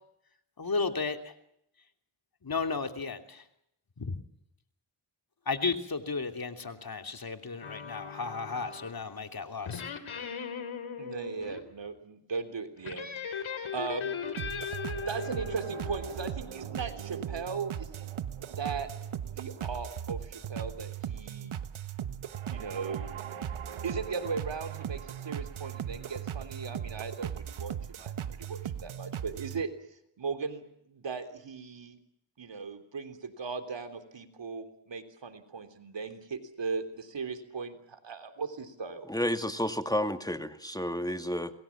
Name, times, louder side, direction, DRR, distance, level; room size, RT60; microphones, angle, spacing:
voice 1, 0.6-1.3 2.4-3.4 4.0-4.2 5.5-9.8, left 4 dB, 45° left, 7 dB, 3.0 m, -34 dB
sound 1, 7.6-9.0 9.7-11.6 12.8-16.3, left 6 dB, 80° left, 3.3 m, -38 dB
voice 2, 11.0-14.1 15.0-18.1 18.6-18.9 19.3-21.6 22.5-23.1 23.8-29.7 30.2-30.6 30.9-32.0 32.4-39.1, right 5 dB, 65° right, 8 dB, 3.5 m, -38 dB
sound 2, 14.4-29.6, right 9 dB, 85° right, 1.4 m, -38 dB
voice 3, 39.1-41.5, left 1 dB, 10° left, 8 dB, 2.2 m, -31 dB
28.0 x 21.5 x 7.3 m, 0.76 s
cardioid pair, 60°, 47 cm